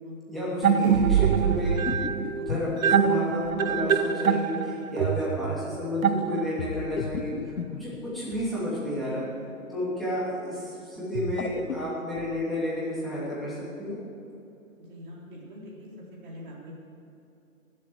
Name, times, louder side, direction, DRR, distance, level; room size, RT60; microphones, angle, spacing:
voice 1, 0.3-1.8 2.3-7.3 7.7-9.2 9.7-14.0, left 1 dB, ahead, -10 dB, 2.8 m, -31 dB
sound 1, 0.6-6.8, right 7 dB, 70° right, 0.9 m, -24 dB
sound 2, 1.5-3.9 6.6-8.6 11.0-12.4, left 6 dB, 90° left, 1.0 m, -36 dB
voice 2, 14.8-15.9 16.2-16.7, equal, 35° right, -5 dB, 4.5 m, -44 dB
19.5 x 7.9 x 7.9 m, 2.9 s
hypercardioid pair, 160°, 42 cm